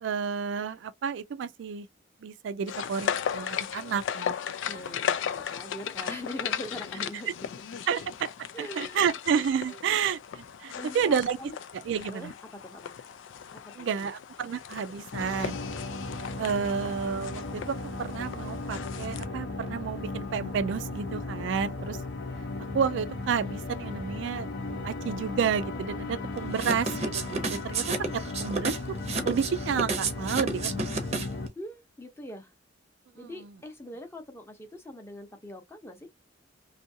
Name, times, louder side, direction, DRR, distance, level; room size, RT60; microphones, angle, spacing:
voice 1, 0.0-1.9 2.2-4.3 4.7-4.9 7.9-8.3 8.6-11.4 11.7-12.3 13.8-15.7 16.4-22.0 22.7-27.8 28.1-28.8 29.3-30.9 33.2-33.5, right 7 dB, 70° right, 0.3 m, -30 dB
sound 1, 2.7-19.3, left 8 dB, 85° left, 0.4 m, -36 dB
voice 2, 4.7-7.8 8.5-9.2 9.7-10.1 10.7-11.5 12.1-13.0 13.8-14.1 31.6-32.5 33.1-36.1, left 1 dB, 15° left, 0.7 m, -42 dB
sound 2, 15.1-31.5, left 2 dB, 65° left, 0.7 m, -36 dB
sound 3, 26.5-31.5, right 4 dB, 35° right, 0.6 m, -31 dB
2.7 x 2.4 x 2.6 m
head